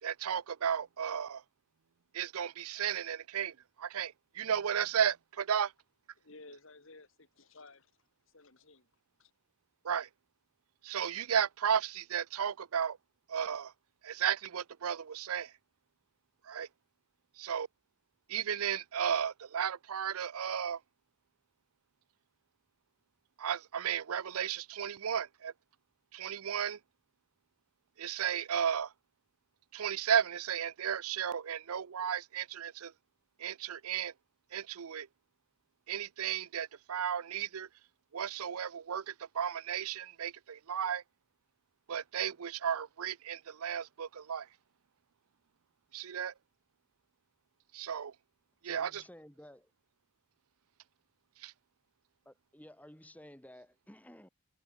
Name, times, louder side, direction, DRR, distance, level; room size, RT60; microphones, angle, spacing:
voice 1, 0.0-1.4 2.1-3.5 3.8-5.7 9.8-10.1 10.8-13.0 13.3-13.7 14.0-15.5 16.5-16.7 17.4-17.7 18.3-20.8 23.4-25.5 26.1-26.8 28.0-28.9 29.7-32.9 33.4-34.1 34.5-35.1 35.9-37.7 38.1-41.0 41.9-44.5 45.9-46.3 47.7-48.1 48.6-49.0 51.4-51.5, right 8 dB, 80° right, 0.6 m, -34 dB
voice 2, 6.2-7.9 8.3-8.9 9.2-9.3, left 3 dB, 65° left, 2.1 m, -55 dB
voice 3, 48.6-49.7 52.3-54.3, equal, 5° left, 2.3 m, -54 dB
head